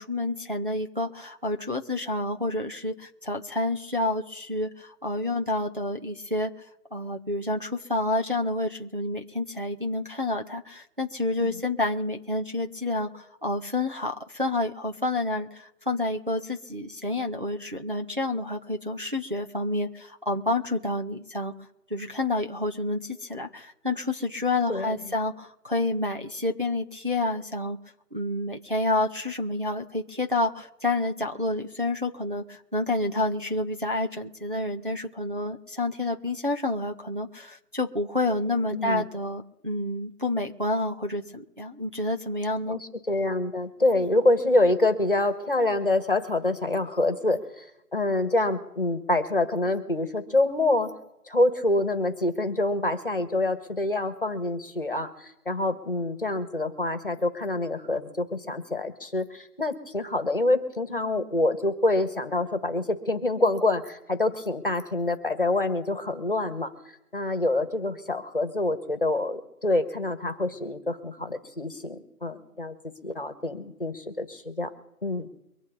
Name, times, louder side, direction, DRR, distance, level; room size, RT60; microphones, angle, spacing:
voice 1, 0.0-6.5 6.9-21.5 21.9-27.8 28.1-42.8, left 2 dB, 35° right, 3 dB, 0.8 m, -29 dB
voice 2, 38.7-39.0 42.7-47.7 47.9-50.9 51.3-66.7 67.1-72.7 73.0-74.7 75.0-75.3, left 2 dB, 35° left, 10 dB, 1.5 m, -26 dB
24.0 x 8.5 x 4.0 m, 0.86 s
figure-of-eight pair, 175°, 46 cm